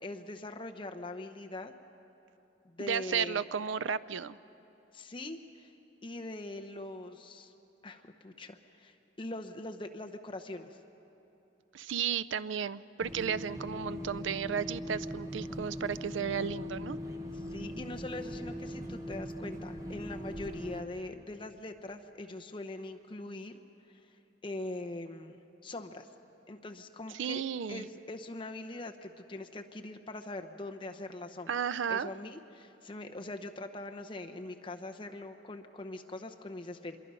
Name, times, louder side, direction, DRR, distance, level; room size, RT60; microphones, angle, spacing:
voice 1, 0.0-1.7 2.6-3.4 4.9-5.7 6.0-7.5 7.8-10.8 17.3-23.6 23.9-24.1 24.4-25.4 25.6-26.1 26.5-27.4 27.7-31.5 31.9-37.0, left 2 dB, 25° left, 5 dB, 0.8 m, -42 dB
voice 2, 2.8-4.4 11.7-17.0 27.1-27.9 31.5-32.1, right 7 dB, 75° right, 17 dB, 0.5 m, -33 dB
sound 1, 13.0-20.8, equal, 15° right, 1.0 m, -40 dB
26.0 x 22.5 x 5.5 m, 3.0 s
head